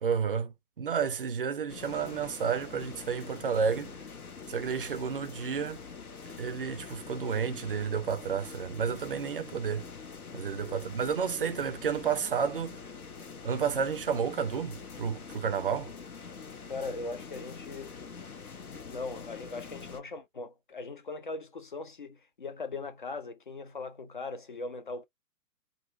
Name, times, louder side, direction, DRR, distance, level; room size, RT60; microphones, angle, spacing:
voice 1, 0.0-4.0 4.5-5.8 6.4-9.9 10.3-12.8 13.4-15.9, right 6 dB, 35° right, 0.5 m, -31 dB
sound 1, 1.7-20.0, left 5 dB, 65° left, 1.0 m, -45 dB
voice 2, 16.7-18.0 18.7-25.0, left 3 dB, 35° left, 0.4 m, -39 dB
3.8 x 2.1 x 3.7 m
figure-of-eight pair, 125°, 48 cm